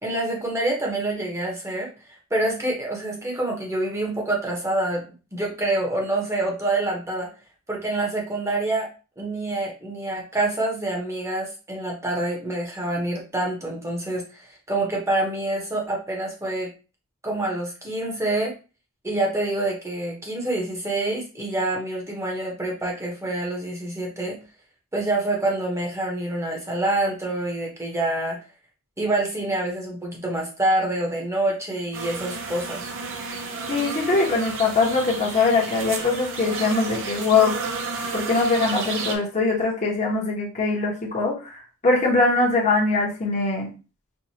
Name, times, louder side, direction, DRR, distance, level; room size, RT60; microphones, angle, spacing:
voice 1, 0.0-5.0 5.3-7.3 7.7-8.9 9.2-16.7 17.2-18.5 19.0-24.4 24.9-28.4 29.0-32.9, right 2 dB, 15° right, -1 dB, 0.9 m, -26 dB
sound 1, 31.9-39.1, right 4 dB, 60° right, 0.7 m, -32 dB
voice 2, 33.7-37.6 38.1-43.7, left 3 dB, 35° left, -3 dB, 1.0 m, -22 dB
4.5 x 2.4 x 2.8 m, 0.33 s
head